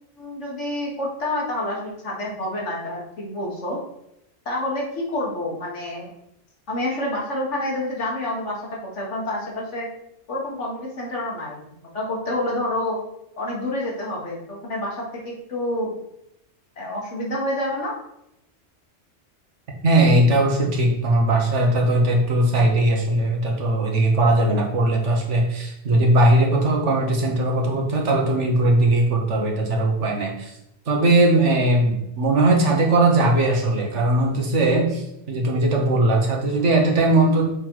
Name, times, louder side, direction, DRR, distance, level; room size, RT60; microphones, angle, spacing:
voice 1, 0.2-3.8 4.5-6.1 6.7-9.9 10.3-13.0 13.4-15.9 16.8-18.0, left 1 dB, 85° left, -2 dB, 2.0 m, -28 dB
voice 2, 19.8-30.5 30.9-37.5, right 2 dB, 80° right, 1 dB, 1.6 m, -19 dB
6.6 x 3.9 x 4.6 m, 0.81 s
omnidirectional pair, 1.2 m